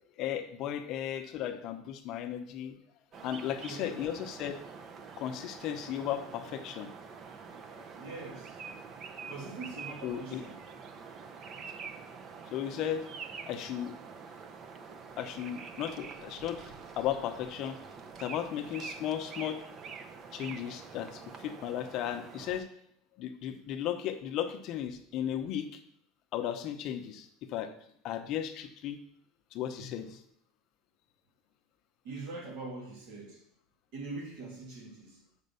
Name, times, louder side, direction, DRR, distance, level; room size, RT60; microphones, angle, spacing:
voice 1, 0.2-2.8 3.2-4.6 5.2-6.9 7.8-7.9 10.0-10.4 12.5-13.1 13.5-13.9 15.2-17.8 18.2-19.6 20.3-22.7 23.2-25.8 26.3-27.7 28.0-29.0 29.5-30.2, left 10 dB, 40° left, 7 dB, 0.8 m, -35 dB
sound 1, 3.1-22.6, right 5 dB, 30° right, 0.6 m, -46 dB
voice 2, 3.5-4.0 8.0-8.6 9.3-10.6 29.8-29.9 32.0-33.4 33.9-35.4, right 3 dB, 65° right, 0 dB, 2.9 m, -43 dB
7.5 x 5.3 x 6.8 m, 0.68 s
cardioid pair, 165°, 0 cm